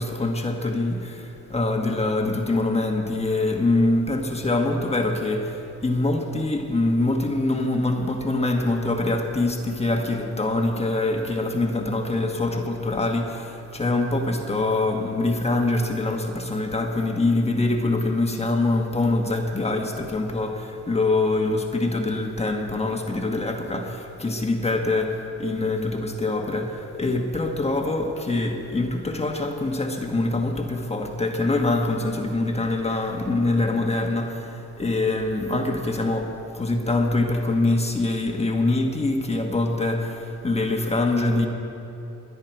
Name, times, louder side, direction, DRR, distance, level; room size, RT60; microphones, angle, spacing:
voice 1, 0.0-41.5, left 2 dB, 20° left, 3 dB, 1.3 m, -24 dB
21.0 x 9.6 x 4.5 m, 2.8 s
cardioid pair, 90°, 30 cm